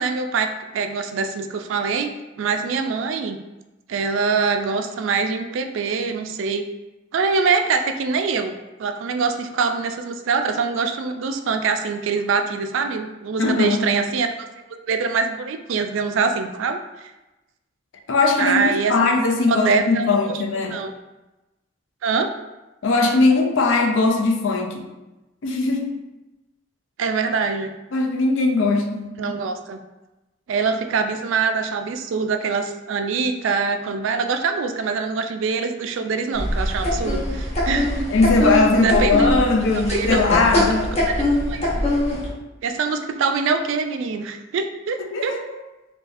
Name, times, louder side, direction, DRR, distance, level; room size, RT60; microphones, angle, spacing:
voice 1, 0.0-3.4 3.9-6.7 7.1-8.5 8.8-14.3 14.9-16.8 18.4-18.9 19.5-20.1 20.7-20.9 22.0-22.3 27.0-27.7 29.2-29.8 30.5-38.1 38.8-39.3 39.7-40.1 41.1-41.7 42.6-45.3, right 5 dB, 80° right, 7 dB, 0.3 m, -24 dB
voice 2, 13.4-13.8 18.1-20.8 22.8-24.8 25.4-26.0 27.9-29.4 38.1-40.9 45.1-45.6, left 3 dB, 75° left, 3 dB, 0.5 m, -20 dB
sound 1, 36.4-42.3, left 1 dB, 35° left, 0.9 m, -22 dB
3.9 x 2.3 x 2.5 m, 1.0 s
head